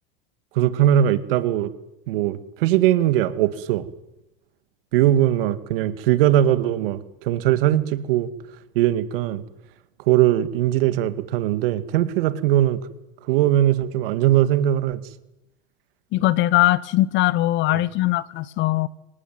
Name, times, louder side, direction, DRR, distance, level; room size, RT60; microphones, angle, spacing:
voice 1, 0.5-1.7 2.1-3.9 4.9-8.3 8.7-9.4 10.1-12.8 13.3-15.0 17.7-17.8, right 12 dB, 75° right, 2.1 m, -20 dB
voice 2, 16.1-18.9, left 16 dB, 40° left, 1.0 m, -20 dB
25.5 x 17.5 x 9.5 m
supercardioid pair, 135°, 29 cm